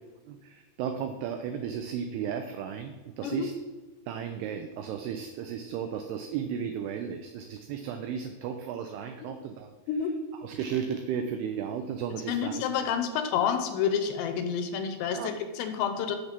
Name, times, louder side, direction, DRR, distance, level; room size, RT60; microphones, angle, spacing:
voice 1, 0.3-3.5 4.1-9.7 10.4-12.5 15.1-15.4, right 8 dB, 90° right, 7 dB, 2.3 m, -34 dB
voice 2, 12.3-16.2, left 7 dB, 80° left, 7 dB, 2.8 m, -29 dB
8.0 x 6.4 x 5.9 m, 1.3 s
omnidirectional pair, 5.2 m